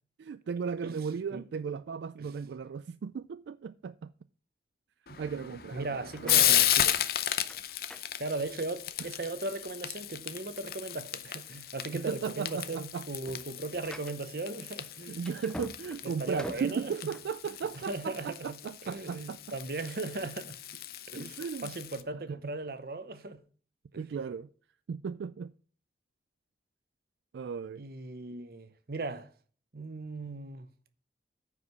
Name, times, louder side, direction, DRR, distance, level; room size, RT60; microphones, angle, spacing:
voice 1, 0.2-4.1 5.2-5.9 6.2-7.0 9.0-9.1 11.9-13.1 15.1-19.4 21.4-21.7 22.3-22.4 24.0-24.5 24.9-25.5 27.3-27.8, right 6 dB, 75° right, 0.3 m, -36 dB
voice 2, 0.8-1.4 2.2-2.3 5.7-6.7 8.2-15.3 16.2-17.1 17.9-18.6 18.9-20.6 21.1-23.4 23.9-24.1 27.8-29.3 29.7-30.7, right 2 dB, 55° right, 0.8 m, -38 dB
Frying (food), 5.1-22.0, left 12 dB, 55° left, 0.6 m, -34 dB
sound 1, 6.1-8.8 9.3-9.7 10.2-10.3 10.7-10.9 11.5-11.8 12.1-18.0, left 1 dB, 5° left, 0.5 m, -47 dB
9.5 x 5.0 x 5.5 m
head